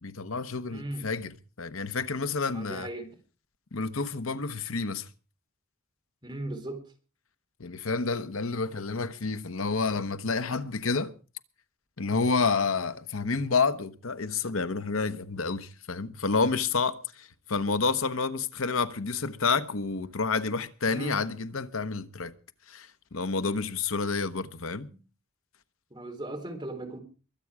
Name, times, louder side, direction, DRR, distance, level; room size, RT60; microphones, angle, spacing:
voice 1, 0.0-2.9 3.7-5.1 7.6-11.1 12.0-22.3 22.7-24.9, left 4 dB, 75° left, 1.1 m, -29 dB
voice 2, 0.7-1.0 2.5-3.1 6.2-6.8 20.8-21.3 24.9-25.0 25.9-27.0, right 1 dB, 20° right, 3.5 m, -37 dB
23.0 x 8.6 x 4.9 m
head